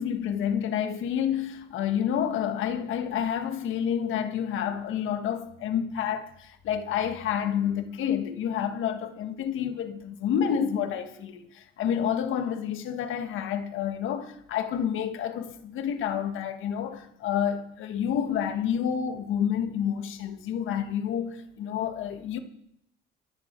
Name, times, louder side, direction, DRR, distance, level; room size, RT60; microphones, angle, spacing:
voice 1, 0.0-22.4, left 8 dB, 85° left, 1.5 m, -29 dB
24.0 x 10.0 x 4.5 m
cardioid pair, 90°, 20 cm